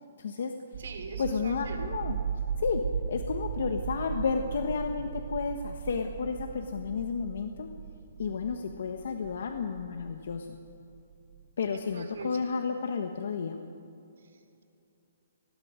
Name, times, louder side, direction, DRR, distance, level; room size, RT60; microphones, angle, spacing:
voice 1, 0.2-0.5 1.2-2.2 2.6-2.8 3.1-7.7 8.2-10.5 11.6-13.6, left 5 dB, 60° left, 5 dB, 1.3 m, -32 dB
sound 1, 0.7-11.4, right 7 dB, 50° right, 0.7 m, -37 dB
voice 2, 0.8-1.8 11.7-12.5, right 4 dB, 70° right, 5 dB, 3.3 m, -42 dB
29.0 x 20.0 x 5.1 m, 2.6 s
hypercardioid pair, 175°, 0 cm